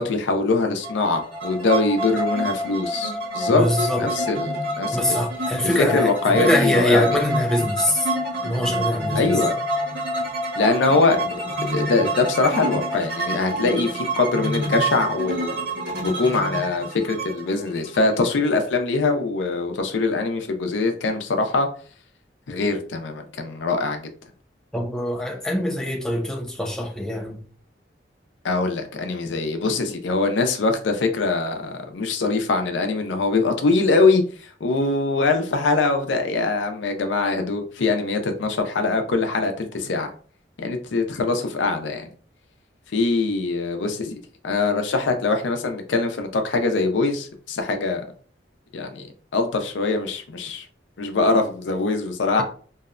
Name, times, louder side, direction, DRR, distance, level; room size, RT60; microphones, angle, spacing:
voice 1, 0.0-5.2 5.7-7.1 9.2-9.5 10.6-11.2 11.6-15.6 16.0-21.7 22.5-24.1 28.4-40.1 40.6-42.1 42.9-44.1 44.4-48.0 48.7-49.1 49.3-50.6 51.0-52.4, left 3 dB, 90° left, 0.5 m, -23 dB
sound 1, 0.8-18.5, right 1 dB, 65° right, 1.1 m, -27 dB
voice 2, 3.5-4.1 4.9-8.1 8.4-9.4 24.7-27.4, left 1 dB, 5° left, 0.4 m, -23 dB
2.7 x 2.1 x 2.4 m
head